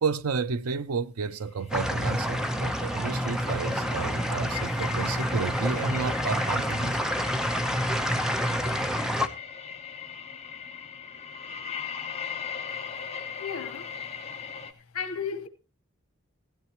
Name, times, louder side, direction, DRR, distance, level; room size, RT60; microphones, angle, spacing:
voice 1, 0.0-7.0, right 5 dB, 80° right, 0.6 m, -31 dB
sound 1, 1.6-14.7, left 7 dB, 30° left, 1.1 m, -39 dB
sound 2, 1.7-9.3, equal, 5° right, 0.8 m, -28 dB
voice 2, 13.4-13.9 14.9-15.5, left 6 dB, 90° left, 1.0 m, -33 dB
16.0 x 12.5 x 3.0 m
head